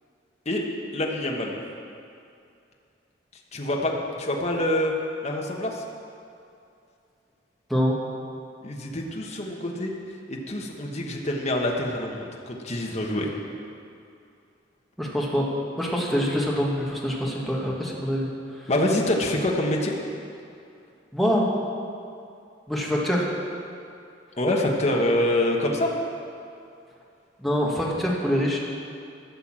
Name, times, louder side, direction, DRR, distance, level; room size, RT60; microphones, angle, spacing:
voice 1, 0.9-1.6 3.5-3.9 4.2-4.9 5.2-5.8 8.6-9.9 10.3-13.3 18.7-19.9 24.4-25.9, left 1 dB, 35° left, 0 dB, 1.3 m, -25 dB
voice 2, 15.0-15.4 15.8-18.3 21.1-21.5 22.7-23.3 27.4-28.6, equal, ahead, -4 dB, 1.7 m, -24 dB
13.0 x 6.7 x 7.5 m, 2.5 s
head